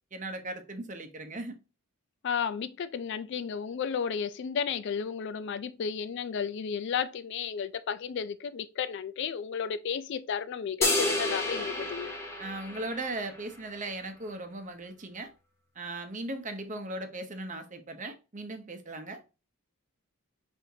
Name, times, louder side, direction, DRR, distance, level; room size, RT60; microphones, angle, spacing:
voice 1, 0.1-1.5 12.4-15.3 15.8-19.2, right 2 dB, 35° right, 0.8 m, -38 dB
voice 2, 2.2-12.2, left 7 dB, 50° left, 0.3 m, -33 dB
sound 1, 10.8-13.4, left 2 dB, 10° left, 0.8 m, -30 dB
5.4 x 3.4 x 2.7 m
head